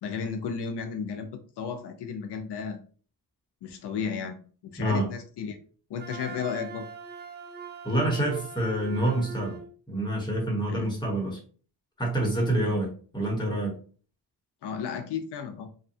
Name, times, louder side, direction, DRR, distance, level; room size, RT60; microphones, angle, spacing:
voice 1, 0.0-2.8 3.6-5.6 5.9-6.9 10.7-10.9 12.6-12.8 14.6-15.7, left 6 dB, 75° left, 0.5 m, -34 dB
voice 2, 4.8-5.1 7.8-9.6 9.9-11.4 12.0-13.7, right 1 dB, 10° left, 1.0 m, -27 dB
Wind instrument woodwind instrument, 6.0-9.7, right 7 dB, 25° right, 0.6 m, -42 dB
2.7 x 2.1 x 2.6 m
cardioid pair, 85°, 40 cm